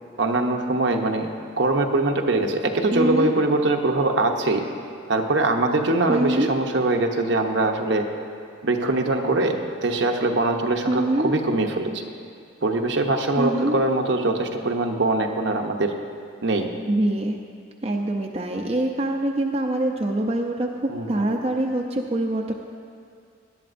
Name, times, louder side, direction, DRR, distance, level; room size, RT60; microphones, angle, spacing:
voice 1, 0.2-1.3 1.6-4.7 5.1-8.0 8.6-12.1 12.6-15.9 16.4-16.7 20.9-21.4, right 2 dB, 65° right, 4 dB, 0.8 m, -22 dB
voice 2, 2.9-3.4 6.1-6.5 10.9-11.3 13.4-13.8 16.9-17.4 17.8-22.5, right 1 dB, 30° right, 1 dB, 0.6 m, -24 dB
19.0 x 11.5 x 2.6 m, 2.2 s
head